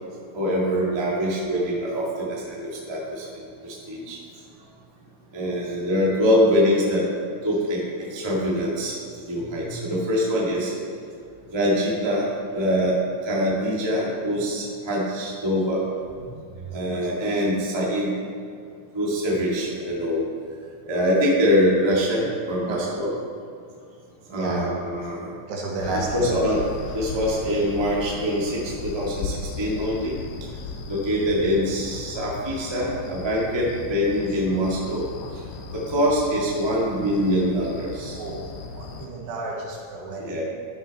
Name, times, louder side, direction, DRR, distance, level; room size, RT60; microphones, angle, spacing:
voice 1, 0.3-3.2 3.6-4.2 5.3-7.0 7.4-7.8 8.1-8.9 9.3-10.7 11.5-12.9 13.2-15.8 16.7-18.1 18.9-20.2 20.9-23.1 24.3-25.3 25.9-26.6 26.9-30.1 30.9-35.0 35.7-38.2 40.2-40.4, equal, 25° right, -5 dB, 0.5 m, -24 dB
voice 2, 10.4-10.8 12.7-12.8 22.7-22.9 24.3-24.7 25.5-26.3 38.2-40.4, right 3 dB, 80° right, -2 dB, 3.7 m, -31 dB
sound 1, 25.8-39.1, left 4 dB, 80° left, 2.8 m, -36 dB
13.0 x 6.9 x 4.3 m, 2.3 s
omnidirectional pair, 4.7 m